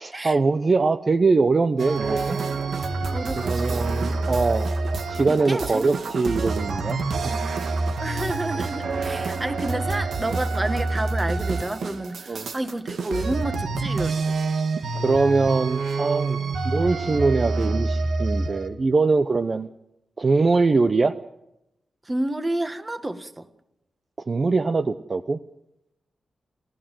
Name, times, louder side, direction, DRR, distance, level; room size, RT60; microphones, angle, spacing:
voice 1, 0.0-2.4 3.4-4.7 5.1-7.0 7.2-7.3 12.3-12.5 15.0-16.4 16.6-19.7 20.2-21.1 24.3-25.4, right 3 dB, 40° right, 0.8 m, -22 dB
sound 1, 1.8-18.7, right 3 dB, 80° right, 2.2 m, -27 dB
voice 2, 3.1-3.9 5.3-5.9 7.2-7.5 8.0-14.2 16.4-16.5 22.0-23.5, right 1 dB, 20° right, 1.6 m, -30 dB
28.0 x 14.5 x 7.7 m
wide cardioid pair, 90°, 0 cm